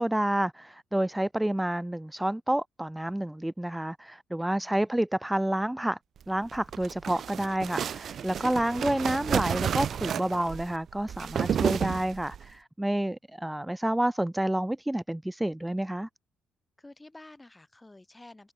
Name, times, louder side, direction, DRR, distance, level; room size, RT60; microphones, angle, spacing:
voice 1, 0.0-6.0 6.3-16.1, right 1 dB, 5° right, 0.5 m, -29 dB
voice 2, 4.4-4.9 11.4-11.8 16.8-18.5, left 2 dB, 15° left, 7.3 m, -51 dB
sound 1, 6.4-12.5, right 8 dB, 60° right, 0.4 m, -31 dB
cardioid pair, 90°, 0 cm